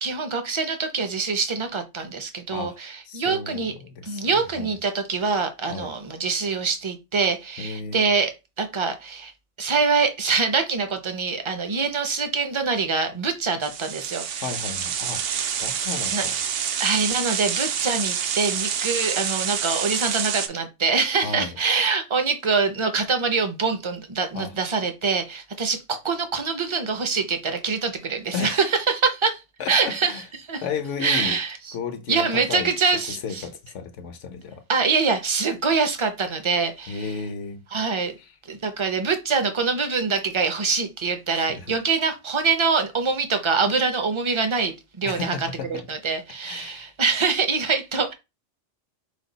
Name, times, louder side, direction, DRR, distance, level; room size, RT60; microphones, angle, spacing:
voice 1, 0.0-3.7 4.0-8.3 8.6-9.3 9.6-14.4 16.1-16.2 16.8-29.4 29.7-30.1 30.4-30.6 31.0-31.6 32.1-33.5 34.7-37.1 37.7-38.2 38.5-48.1, right 4 dB, 30° right, 0.6 m, -24 dB
voice 2, 3.1-4.7 5.7-5.9 7.6-8.1 14.4-15.2 15.6-16.4 21.2-21.5 24.3-24.5 28.3-28.6 29.6-30.3 30.6-31.4 31.7-32.7 33.2-34.6 36.9-37.6 41.3-41.7 45.0-45.8 46.4-46.9, left 5 dB, 75° left, 1.1 m, -33 dB
sound 1, 13.6-20.5, right 8 dB, 60° right, 0.7 m, -27 dB
5.1 x 2.3 x 3.9 m
omnidirectional pair, 1.3 m